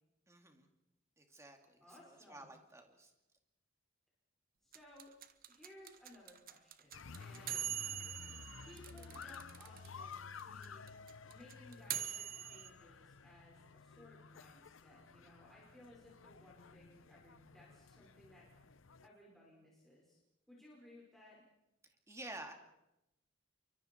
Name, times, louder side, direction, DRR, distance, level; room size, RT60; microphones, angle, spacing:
voice 1, 0.3-0.7 1.2-3.1 21.8-22.5, right 1 dB, 15° right, 4 dB, 2.7 m, -52 dB
voice 2, 1.8-2.5 4.6-5.1 5.5-7.8 8.6-10.8 11.3-18.5 19.0-20.2 20.5-21.4, left 1 dB, ahead, -5 dB, 5.3 m, -60 dB
sound 1, 4.7-9.9 10.1-10.2 10.4-12.7, right 11 dB, 45° right, 1.2 m, -42 dB
sound 2, 6.9-19.1, left 5 dB, 75° left, 0.8 m, -54 dB
29.0 x 24.0 x 4.6 m, 0.90 s
head